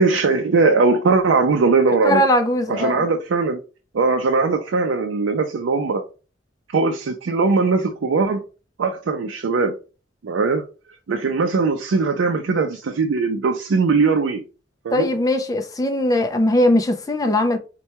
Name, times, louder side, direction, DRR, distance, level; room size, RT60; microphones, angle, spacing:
voice 1, 0.0-2.2 2.7-3.6 3.9-6.0 6.7-8.4 8.8-9.8 10.2-10.7 11.1-14.4 14.8-15.1, right 4 dB, 90° right, 0.4 m, -20 dB
voice 2, 2.0-3.0 14.9-17.6, left 1 dB, 20° left, 0.4 m, -19 dB
4.3 x 2.2 x 2.8 m
head